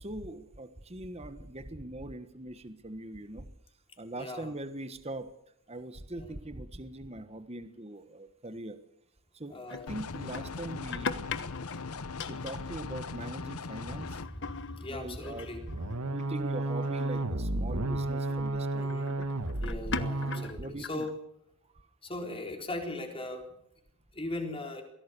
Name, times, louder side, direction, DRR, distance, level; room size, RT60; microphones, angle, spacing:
voice 1, 0.0-3.5 4.0-5.3 5.7-8.8 9.3-11.4 12.3-14.2 14.9-15.5 16.1-18.9 19.2-19.3 20.3-21.1 21.7-21.9, right 1 dB, 30° right, 10 dB, 1.3 m, -41 dB
voice 2, 4.2-4.5 6.1-6.4 9.5-9.9 13.9-16.0 18.8-19.1 19.6-21.2 22.0-23.4 24.1-24.8, left 2 dB, 25° left, 3 dB, 4.0 m, -39 dB
sound 1, 9.7-12.7 13.0-13.4 13.7-16.3 16.8-17.2 18.3-18.5 18.9-21.1, left 5 dB, 55° left, 1.3 m, -40 dB
sound 2, 9.9-14.3, left 4 dB, 80° left, 1.0 m, -39 dB
sound 3, 15.7-20.6, right 2 dB, 90° right, 1.8 m, -32 dB
23.5 x 17.0 x 6.8 m, 0.76 s
head